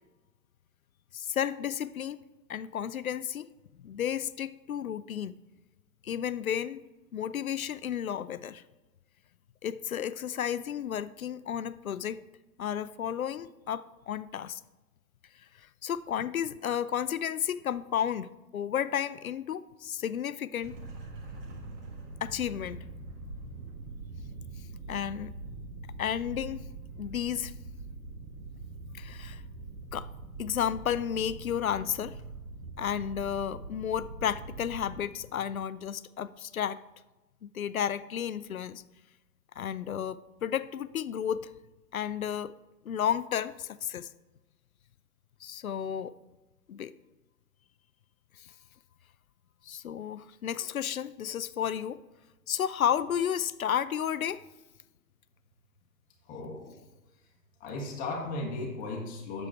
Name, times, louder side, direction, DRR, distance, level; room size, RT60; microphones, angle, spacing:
voice 1, 1.1-2.2 2.5-3.5 3.8-5.3 6.0-6.8 7.1-8.6 9.6-12.2 12.6-14.6 15.6-20.8 22.2-22.8 24.9-25.3 26.0-26.6 27.0-27.5 29.0-29.4 29.9-30.1 30.4-32.2 32.8-36.8 37.4-38.8 39.6-41.5 41.9-42.5 42.8-44.1 45.4-46.1 46.7-46.9 48.4-48.5 49.6-52.0 52.5-54.4, left 9 dB, 60° left, 16 dB, 0.5 m, -32 dB
sound 1, 20.6-35.0, right 3 dB, 35° right, 1.5 m, -43 dB
voice 2, 56.3-56.7 57.6-59.5, left 2 dB, 15° left, 0 dB, 1.3 m, -36 dB
8.4 x 6.8 x 4.6 m, 1.1 s
figure-of-eight pair, 120°, 49 cm